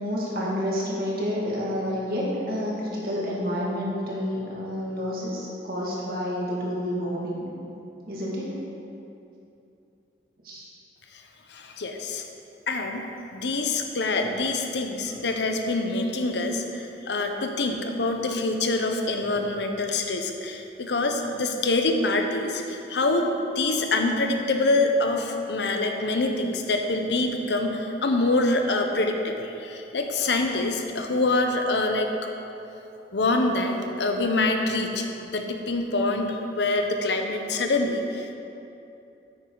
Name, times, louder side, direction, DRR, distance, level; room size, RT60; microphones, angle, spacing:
voice 1, 0.0-7.5 8.1-8.5 10.4-10.7, equal, 55° right, -5 dB, 2.1 m, -29 dB
voice 2, 11.5-12.3 12.7-13.1 13.3-32.3 33.1-38.3, left 2 dB, 85° left, 4 dB, 0.8 m, -25 dB
9.4 x 8.8 x 3.9 m, 2.8 s
head